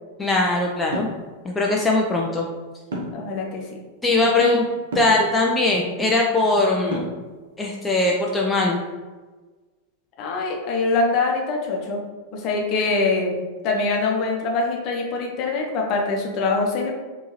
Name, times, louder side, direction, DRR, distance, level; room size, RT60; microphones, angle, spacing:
voice 1, 0.2-1.1 1.4-2.5 4.0-4.6 4.9-7.1 7.6-8.8, left 2 dB, 10° left, -2 dB, 0.4 m, -20 dB
sound 1, 0.9-1.2 2.9-3.3 4.9-5.2 6.9-7.3, equal, 65° right, 0.9 m, -29 dB
voice 2, 3.1-3.7 4.4-4.6 10.2-12.0 12.3-16.9, left 3 dB, 40° left, 0 dB, 0.8 m, -24 dB
4.4 x 2.7 x 3.1 m, 1.3 s
figure-of-eight pair, 90°, 0 cm